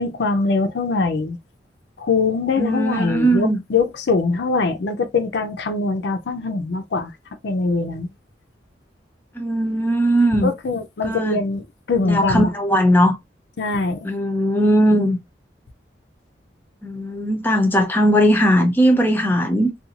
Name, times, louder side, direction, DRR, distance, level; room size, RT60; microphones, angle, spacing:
voice 1, 0.0-1.4 2.0-7.1 7.4-8.1 10.4-12.6 13.6-14.1, left 3 dB, 75° left, 0.5 m, -22 dB
voice 2, 2.6-3.6 9.4-10.5 11.0-11.4 12.0-13.2 14.0-15.2 16.8-19.7, equal, 10° left, 0.5 m, -18 dB
2.5 x 2.3 x 2.8 m
head